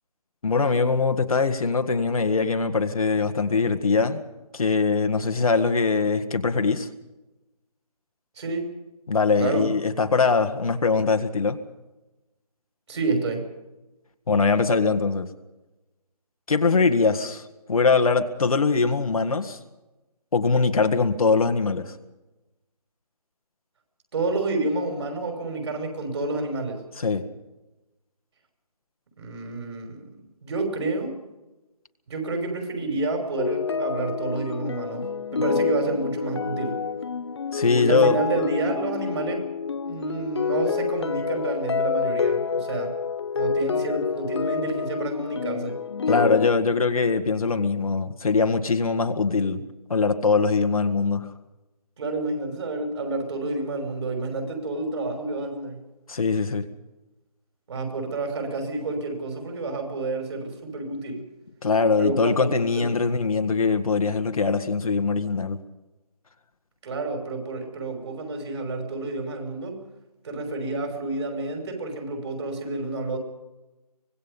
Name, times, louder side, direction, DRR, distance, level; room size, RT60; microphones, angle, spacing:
voice 1, 0.4-4.2 4.5-6.9 9.1-11.6 14.3-15.3 16.5-17.4 17.7-19.6 20.3-21.9 27.0-27.2 37.5-38.2 46.1-49.6 49.9-51.3 56.1-56.7 61.6-65.6, left 4 dB, 60° left, 1.7 m, -22 dB
voice 2, 8.4-8.7 9.4-9.7 12.9-13.5 24.1-26.8 29.2-30.1 30.4-31.2 32.1-36.7 37.7-39.4 39.8-43.0 43.3-45.8 52.0-55.8 57.7-61.2 62.0-62.9 66.8-69.8 70.2-73.2, right 2 dB, 40° right, 6.0 m, -29 dB
sound 1, 33.4-46.5, left 6 dB, 45° left, 0.7 m, -28 dB
25.0 x 20.0 x 5.4 m
figure-of-eight pair, 160°, 21 cm